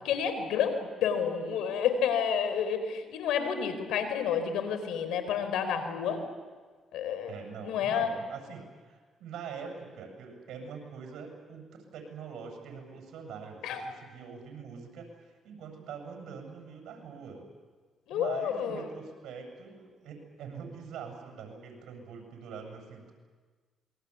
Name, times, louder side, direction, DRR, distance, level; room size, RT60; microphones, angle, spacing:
voice 1, 0.0-6.2 6.9-7.4 7.6-8.1 13.6-13.8 18.1-18.9, left 7 dB, 90° left, 9 dB, 4.1 m, -30 dB
voice 2, 7.3-17.4 18.1-23.1, right 6 dB, 80° right, 3 dB, 7.6 m, -44 dB
27.5 x 23.0 x 8.4 m, 1.5 s
cardioid pair, 90°, 0 cm